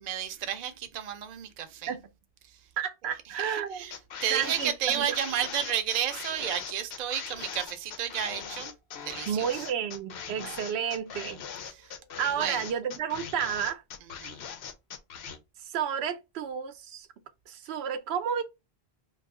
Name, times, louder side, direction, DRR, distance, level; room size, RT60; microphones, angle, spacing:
voice 1, 0.0-1.9 2.4-2.6 3.3-3.9 4.2-8.7 9.0-9.7 11.7-11.9 12.4-12.6 14.2-14.4, right 9 dB, 50° right, 0.5 m, -32 dB
voice 2, 2.8-3.8 4.3-5.1 9.3-11.4 12.2-13.8 15.6-17.1 17.5-18.4, right 8 dB, 85° right, 0.8 m, -31 dB
sound 1, 3.9-15.4, left 7 dB, 80° left, 0.8 m, -40 dB
2.6 x 2.4 x 3.5 m
omnidirectional pair, 1.0 m